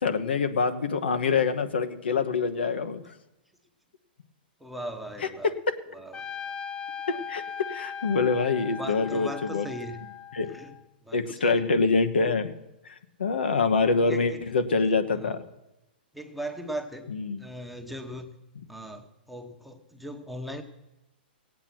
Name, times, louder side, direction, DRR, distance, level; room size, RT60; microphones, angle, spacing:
voice 1, 0.0-3.0 7.1-7.4 7.7-9.7 10.3-10.5 11.1-12.5 12.8-15.5 17.1-17.4, left 4 dB, 85° left, 7 dB, 1.1 m, -25 dB
voice 2, 4.6-5.5 5.9-6.3 8.7-10.1 10.5-10.8 11.0-11.6 14.1-14.4 15.1-15.4 16.1-17.1 17.4-18.4 18.7-20.6, right 1 dB, ahead, 4 dB, 1.0 m, -38 dB
Trumpet, 6.1-10.8, left 7 dB, 15° left, 0.5 m, -38 dB
16.5 x 8.3 x 6.0 m, 0.93 s
hypercardioid pair, 135°, 6 cm